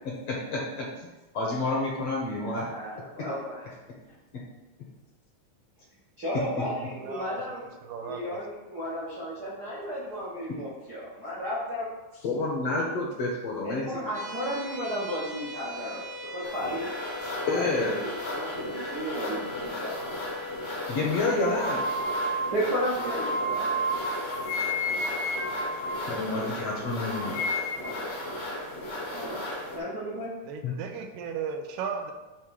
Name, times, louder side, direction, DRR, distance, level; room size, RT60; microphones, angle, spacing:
voice 1, 0.1-1.1 1.3-2.7 3.2-3.3 6.3-6.7 12.2-13.9 17.5-18.0 20.9-21.9 26.1-27.4 30.6-30.7, left 2 dB, 65° left, -3 dB, 1.7 m, -29 dB
voice 2, 2.4-3.6 6.2-7.7 8.0-12.2 13.6-16.9 17.2-20.0 22.5-23.8 27.8-28.1 29.1-29.4 29.7-30.3, equal, 60° right, -7 dB, 1.0 m, -34 dB
voice 3, 6.9-7.5 7.8-8.2 30.5-32.1, right 6 dB, 85° right, 4 dB, 2.4 m, -35 dB
sound 1, 14.1-25.3, left 2 dB, 40° right, 0.7 m, -41 dB
sound 2, 16.4-29.8, left 1 dB, 50° left, 0.9 m, -36 dB
sound 3, 21.4-26.7 27.0-28.1, equal, 85° left, 1.4 m, -31 dB
9.0 x 3.3 x 4.8 m, 1.1 s
omnidirectional pair, 3.9 m